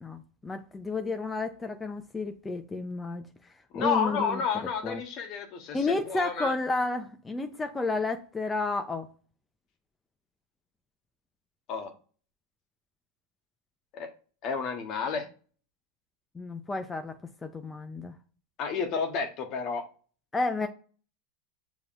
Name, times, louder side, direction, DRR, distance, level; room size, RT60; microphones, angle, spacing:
voice 1, 0.0-3.3 3.7-4.4 4.8-5.0 5.7-9.1 16.4-17.1 17.4-18.1 20.3-20.7, left 3 dB, 15° left, 6 dB, 0.6 m, -31 dB
voice 2, 3.7-6.5 11.7-11.9 13.9-14.1 14.4-15.3 18.6-19.8, left 6 dB, 50° left, 5 dB, 1.2 m, -31 dB
6.9 x 3.0 x 2.6 m, 0.40 s
hypercardioid pair, 100°, 0 cm